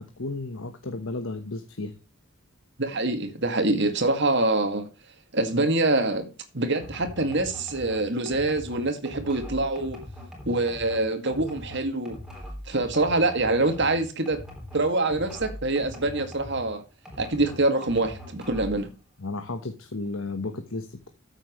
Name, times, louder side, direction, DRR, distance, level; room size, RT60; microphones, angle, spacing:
voice 1, 0.0-1.9 19.2-21.1, left 2 dB, 65° left, 1.2 m, -33 dB
voice 2, 2.8-4.9 5.3-10.0 10.5-12.2 12.7-14.4 14.7-16.8 17.2-18.9, right 2 dB, 50° right, 2.1 m, -25 dB
sound 1, 6.8-16.7 17.1-18.8, left 1 dB, 5° right, 3.8 m, -41 dB
14.0 x 7.7 x 3.1 m
head